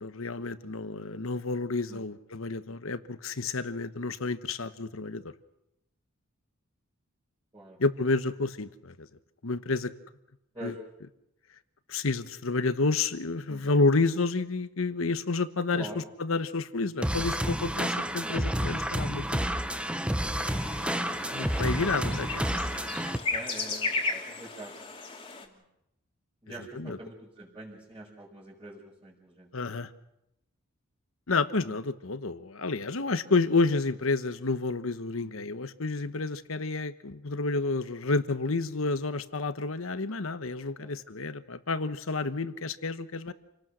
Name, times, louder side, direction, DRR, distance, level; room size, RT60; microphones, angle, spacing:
voice 1, 0.0-5.3 7.8-9.1 9.4-9.9 10.6-10.7 11.9-15.9 16.2-19.4 21.3-22.6 26.7-27.0 29.5-29.9 31.3-43.3, left 3 dB, 70° left, 12 dB, 1.1 m, -30 dB
voice 2, 15.7-16.1 17.1-17.2 18.2-18.3 21.7-21.9 23.3-24.7 25.3-25.6 26.4-29.5 35.2-35.3 40.8-40.9, right 2 dB, 20° right, -7 dB, 5.2 m, -45 dB
sound 1, 17.0-23.2, equal, 5° right, 0.9 m, -30 dB
sound 2, 20.4-25.5, left 3 dB, 25° left, 2.6 m, -35 dB
28.0 x 18.5 x 6.4 m, 0.86 s
head